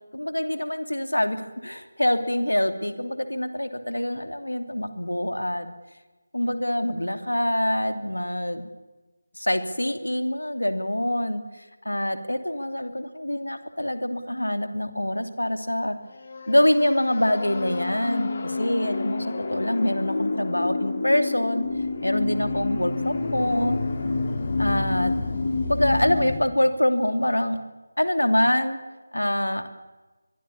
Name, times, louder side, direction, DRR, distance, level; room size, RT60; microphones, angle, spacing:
voice 1, 0.1-5.7 6.3-8.6 9.4-11.4 11.8-16.0 16.5-21.6 22.0-23.8 24.6-25.1 25.7-27.6 28.0-28.8 29.1-29.6, left 1 dB, 80° left, 8 dB, 2.8 m, -25 dB
sound 1, 16.1-26.4, left 3 dB, 40° left, 2.8 m, -28 dB
24.0 x 22.5 x 7.3 m, 1.2 s
figure-of-eight pair, 160°, 0 cm